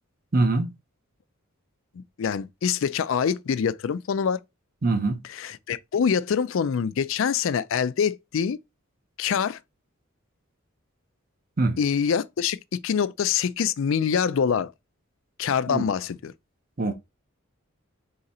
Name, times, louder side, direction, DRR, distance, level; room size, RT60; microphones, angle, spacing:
voice 1, 0.3-0.7 4.8-5.2 11.6-11.8 15.7-15.9 16.8-16.9, right 2 dB, 40° right, 0.7 m, -23 dB
voice 2, 2.0-4.4 5.3-8.6 9.2-9.6 11.8-14.7 15.4-16.3, left 7 dB, 65° left, 0.4 m, -25 dB
3.8 x 2.8 x 4.2 m
head